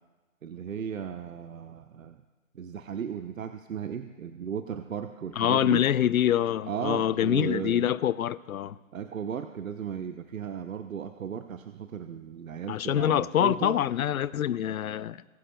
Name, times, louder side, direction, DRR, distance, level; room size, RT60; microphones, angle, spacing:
voice 1, 0.4-2.2 2.5-5.9 6.7-7.9 8.9-13.8, right 8 dB, 75° right, 8 dB, 0.7 m, -35 dB
voice 2, 5.4-8.8 12.7-15.2, left 10 dB, 85° left, 17 dB, 0.5 m, -25 dB
20.5 x 9.8 x 2.2 m, 1.3 s
hypercardioid pair, 180°, 41 cm